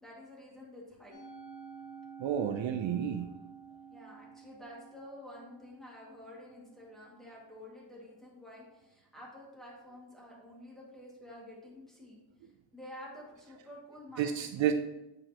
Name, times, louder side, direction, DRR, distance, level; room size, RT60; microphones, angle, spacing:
voice 1, 0.0-1.2 3.9-12.2 12.7-14.7, left 1 dB, ahead, -5 dB, 2.0 m, -50 dB
Musical instrument, 1.1-7.5, right 6 dB, 50° left, 2.1 m, -51 dB
voice 2, 2.2-3.3 14.2-14.7, right 9 dB, 65° right, 7 dB, 0.6 m, -30 dB
7.6 x 4.9 x 2.9 m, 0.96 s
wide cardioid pair, 135°, 49 cm